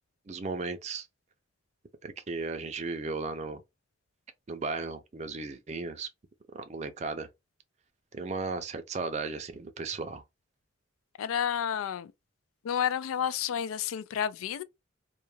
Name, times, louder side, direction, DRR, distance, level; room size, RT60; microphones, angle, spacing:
voice 1, 0.3-1.1 2.0-3.6 4.5-6.1 6.5-7.3 8.1-10.2, right 4 dB, 35° right, 0.4 m, -35 dB
voice 2, 11.2-12.1 12.6-14.6, left 9 dB, 85° left, 0.3 m, -30 dB
2.2 x 2.2 x 3.1 m
head